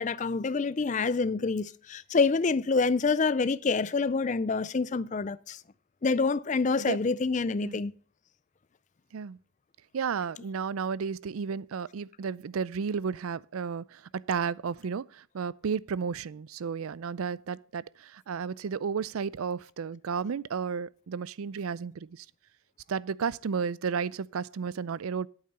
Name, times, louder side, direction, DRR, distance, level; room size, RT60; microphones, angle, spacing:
voice 1, 0.0-5.6 6.0-7.9, left 4 dB, 35° left, 0.4 m, -27 dB
voice 2, 9.9-22.3 22.9-25.3, right 6 dB, 85° right, 0.4 m, -33 dB
8.8 x 8.6 x 6.6 m
head